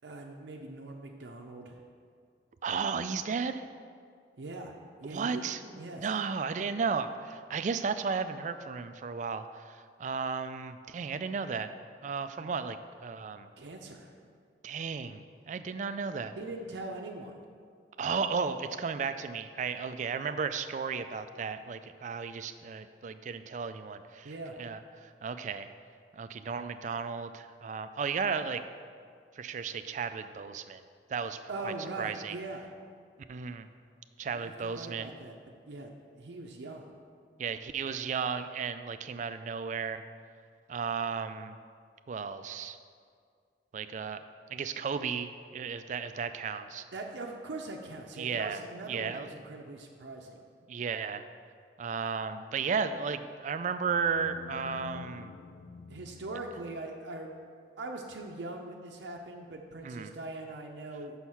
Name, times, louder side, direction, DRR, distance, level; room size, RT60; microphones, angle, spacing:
voice 1, 0.0-1.8 4.4-4.7 5.0-5.4 5.7-6.1 13.6-14.1 16.4-17.3 24.2-24.6 31.5-32.7 34.3-35.4 35.7-35.9 36.2-36.9 46.9-50.4 55.9-57.4 57.8-61.2, right 2 dB, 90° right, 1 dB, 0.6 m, -41 dB
voice 2, 2.6-3.6 5.0-11.7 12.0-12.8 13.0-13.5 14.6-16.3 18.0-24.3 24.6-25.7 26.1-28.6 29.4-30.8 31.1-32.4 33.3-33.7 34.2-35.1 37.4-40.0 40.7-41.6 42.1-42.8 43.7-44.2 44.5-46.8 48.2-48.6 48.9-49.3 50.7-51.2 51.8-55.3 59.8-60.1, right 5 dB, 45° right, 10 dB, 0.3 m, -34 dB
sound 1, 53.8-56.9, left 5 dB, 65° left, 0.3 m, -47 dB
6.2 x 5.6 x 5.7 m, 2.1 s
head